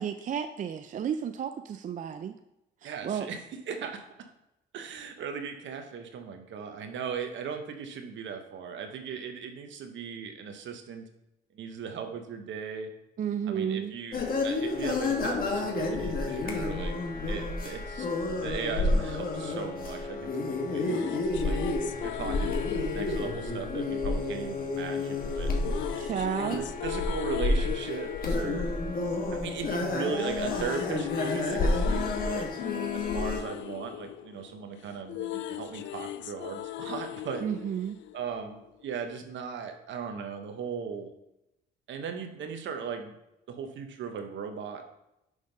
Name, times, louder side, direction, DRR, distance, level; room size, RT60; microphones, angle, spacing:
voice 1, 0.0-2.3 2.8-3.3 13.2-13.9 26.0-26.6 37.4-38.0, right 8 dB, 40° right, 8 dB, 0.4 m, -32 dB
voice 2, 2.8-4.0 4.7-11.0 11.5-12.9 13.5-17.0 17.3-18.1 18.4-20.9 21.4-25.5 26.4-28.7 29.3-32.5 32.9-37.5 38.1-41.1 41.9-43.1 43.5-44.8, right 6 dB, 70° right, 6 dB, 1.0 m, -38 dB
sound 1, 14.1-33.4, left 2 dB, 45° left, 1.3 m, -30 dB
sound 2, 20.6-24.7 25.6-29.8 30.1-38.6, left 12 dB, 70° left, 0.4 m, -38 dB
6.3 x 3.5 x 5.2 m, 0.88 s
cardioid pair, 90°, 20 cm